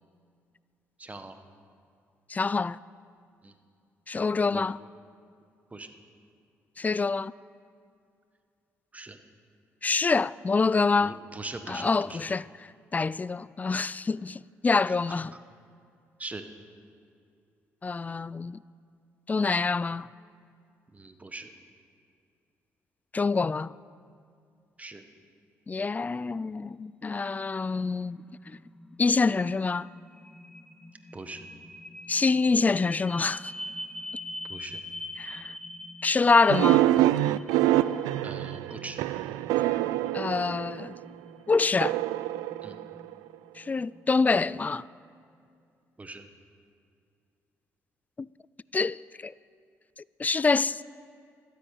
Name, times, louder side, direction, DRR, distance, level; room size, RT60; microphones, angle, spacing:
voice 1, 1.0-1.4 3.4-3.5 4.4-4.7 5.7-5.9 8.9-9.2 11.0-12.3 14.9-15.4 16.2-16.5 20.9-21.5 24.8-25.1 31.1-31.4 34.5-34.8 38.2-39.0 42.6-42.8 46.0-46.3, right 3 dB, 25° right, 1.3 m, -42 dB
voice 2, 2.3-2.8 4.1-4.8 6.8-7.3 9.8-11.2 11.7-12.5 12.9-15.3 17.8-18.6 19.3-20.1 23.1-23.7 25.7-28.2 28.5-28.6 29.0-29.9 32.1-33.5 35.2-35.5 36.0-36.9 40.1-40.9 41.5-42.0 43.6-44.8 48.2-48.3 48.7-49.3 50.2-50.8, left 4 dB, 25° left, 0.3 m, -26 dB
sound 1, 26.8-44.8, left 1 dB, 10° left, 1.1 m, -45 dB
sound 2, 36.5-41.0 41.8-43.3, right 14 dB, 85° right, 0.3 m, -26 dB
12.5 x 10.0 x 8.5 m
supercardioid pair, 60°, 6 cm